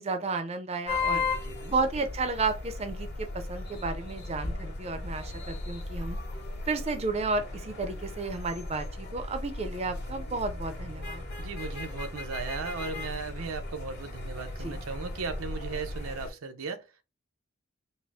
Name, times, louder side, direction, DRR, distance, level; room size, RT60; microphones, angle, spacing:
voice 1, 0.0-1.2 1.7-6.2 6.7-11.2 14.6-14.8, right 3 dB, 30° right, 0.5 m, -32 dB
sound 1, 0.9-16.3, left 3 dB, 50° left, 1.3 m, -36 dB
voice 2, 1.1-1.7 11.4-17.0, right 4 dB, 85° right, 0.6 m, -37 dB
4.2 x 2.0 x 3.4 m
head